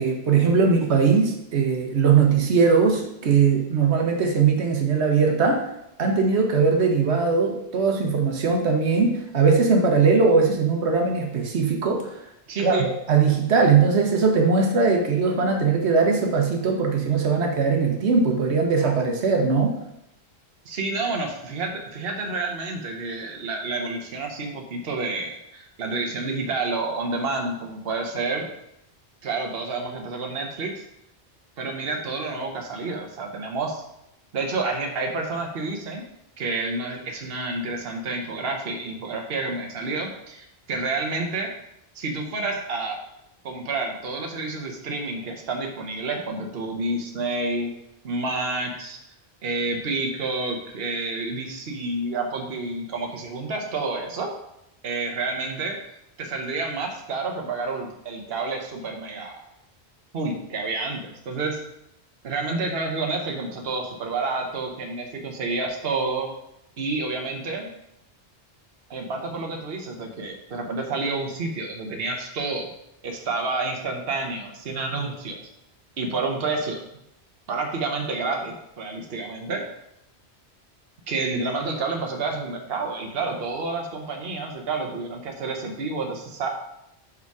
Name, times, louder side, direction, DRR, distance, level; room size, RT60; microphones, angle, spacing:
voice 1, 0.0-5.7 6.0-12.2 12.6-19.8, right 5 dB, 85° right, 2 dB, 1.2 m, -20 dB
voice 2, 12.5-12.9 20.6-28.5 29.2-30.8 31.6-33.8 34.3-36.0 36.4-41.5 41.9-43.0 43.4-47.7 48.0-49.0 49.4-54.3 54.8-55.8 56.2-59.4 60.1-61.6 62.2-66.3 66.8-67.7 68.9-72.7 73.0-75.4 76.0-76.8 77.5-79.6 81.1-86.5, right 3 dB, 65° right, 2 dB, 1.2 m, -29 dB
5.4 x 4.9 x 4.7 m, 0.81 s
omnidirectional pair, 1.1 m